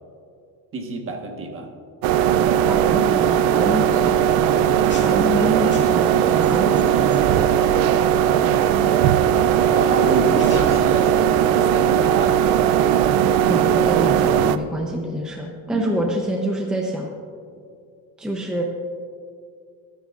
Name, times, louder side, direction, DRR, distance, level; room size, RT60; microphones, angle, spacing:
voice 1, 0.7-1.7 5.0-5.5 7.4-8.8 9.7-12.6 15.7-15.9, right 3 dB, 35° right, 3 dB, 1.4 m, -29 dB
sound 1, 2.0-14.6, right 9 dB, 65° right, 0.6 m, -18 dB
voice 2, 2.7-4.2 5.0-7.1 13.5-17.1 18.2-18.6, equal, ahead, 0 dB, 0.7 m, -27 dB
sound 2, 3.9-11.1, left 2 dB, 30° left, 2.0 m, -41 dB
24.5 x 9.3 x 2.5 m, 2.3 s
cardioid pair, 160°, 39 cm